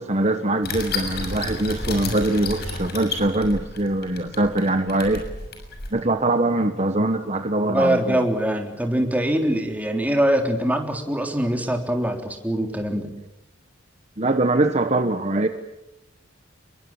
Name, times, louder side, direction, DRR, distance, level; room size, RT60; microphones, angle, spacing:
voice 1, 0.0-5.2 5.9-8.2 14.2-15.5, right 2 dB, 35° right, 8 dB, 1.2 m, -22 dB
sound 1, 0.6-5.9, left 3 dB, 50° left, 6.8 m, -31 dB
voice 2, 7.6-13.1, right 1 dB, 10° right, 3 dB, 3.5 m, -23 dB
28.0 x 23.0 x 7.3 m, 0.94 s
head